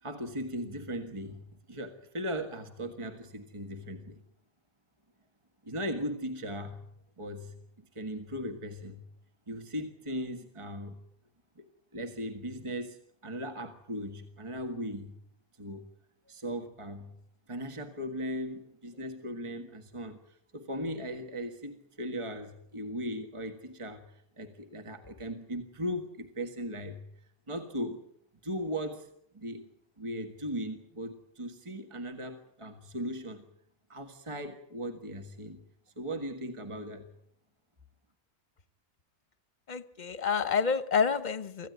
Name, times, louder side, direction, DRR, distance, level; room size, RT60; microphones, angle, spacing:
voice 1, 0.0-4.2 5.6-6.8 7.2-9.0 9.5-11.0 11.6-11.7 11.9-15.2 15.5-15.9 16.3-17.1 17.5-27.0 27.5-28.0 28.4-29.1 29.3-29.7 30.0-33.5 33.9-35.6 35.9-37.1, equal, 25° right, 4 dB, 1.7 m, -38 dB
voice 2, 39.7-41.7, left 6 dB, 40° left, 13 dB, 1.3 m, -28 dB
25.5 x 15.0 x 9.4 m, 0.73 s
omnidirectional pair, 1.2 m